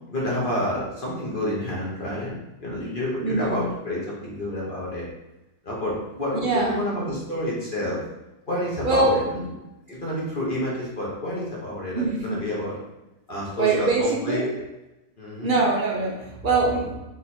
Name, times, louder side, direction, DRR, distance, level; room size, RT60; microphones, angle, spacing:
voice 1, 0.1-2.4 2.6-5.1 5.6-8.0 8.5-9.2 9.9-12.7 13.3-14.4 15.2-15.5, left 1 dB, 35° left, -5 dB, 1.3 m, -29 dB
voice 2, 3.2-3.7 6.3-6.8 8.8-9.4 11.9-12.4 13.5-14.5 15.4-17.0, right 3 dB, 45° right, -2 dB, 0.7 m, -23 dB
3.8 x 3.2 x 4.3 m, 0.99 s
omnidirectional pair, 1.6 m